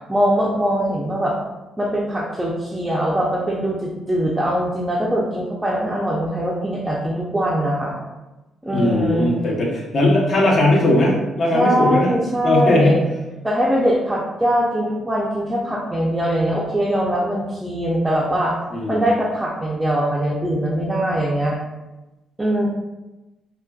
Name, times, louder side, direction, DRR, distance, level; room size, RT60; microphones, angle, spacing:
voice 1, 0.1-1.4 1.8-8.0 8.6-9.3 11.5-13.0 13.4-18.5 18.9-21.6 22.4-22.7, equal, 15° right, -5 dB, 0.4 m, -21 dB
voice 2, 8.7-12.2 12.4-13.0 18.7-19.1, left 1 dB, 55° left, -3 dB, 0.7 m, -18 dB
2.5 x 2.2 x 2.3 m, 1.1 s
cardioid pair, 90°, 0 cm